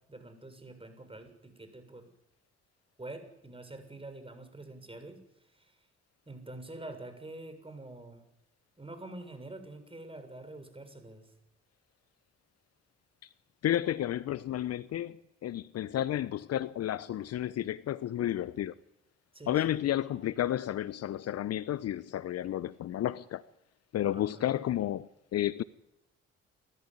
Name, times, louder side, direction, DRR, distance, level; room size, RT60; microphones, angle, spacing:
voice 1, 0.1-2.1 3.0-5.2 5.5-5.8 6.3-8.2 8.8-11.3 19.3-19.9 24.1-24.6, right 2 dB, 15° right, 7.0 m, -46 dB
voice 2, 13.6-18.7 19.5-23.4 23.9-25.6, left 12 dB, 50° left, 0.8 m, -32 dB
28.0 x 14.0 x 9.9 m
hypercardioid pair, 45°, 32 cm